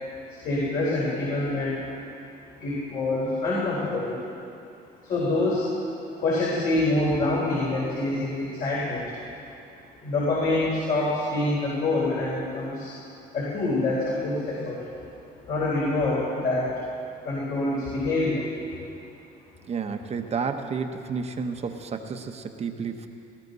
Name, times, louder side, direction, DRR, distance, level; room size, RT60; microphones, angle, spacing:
voice 1, 0.3-1.8 2.6-4.2 5.0-5.7 6.2-9.1 10.0-12.9 13.3-14.8 15.5-16.7 17.2-18.4 18.7-18.8, left 2 dB, 60° left, -7 dB, 4.3 m, -26 dB
voice 2, 19.7-23.1, right 5 dB, 40° right, 6 dB, 1.0 m, -31 dB
19.0 x 16.0 x 4.1 m, 2.6 s
cardioid pair, 110°, 17 cm